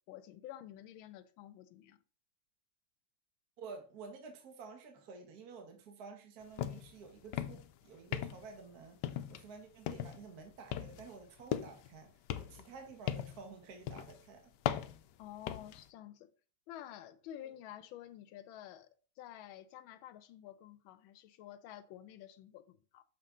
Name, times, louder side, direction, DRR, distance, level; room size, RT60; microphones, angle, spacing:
voice 1, 0.1-2.0 15.2-16.3 16.7-18.9 19.2-23.0, left 12 dB, 90° left, 1.4 m, -50 dB
voice 2, 3.6-9.0 9.3-12.1 12.4-14.5 17.4-17.5, right 5 dB, 55° right, 1.6 m, -51 dB
sound 1, 6.6-6.9 7.2-7.7 8.1-8.6 9.0-9.5 9.9-10.2 10.7-11.9 12.3-13.5 13.9-14.2 14.7-15.8, left 11 dB, 75° left, 1.1 m, -38 dB
6.4 x 5.9 x 3.7 m
omnidirectional pair, 2.1 m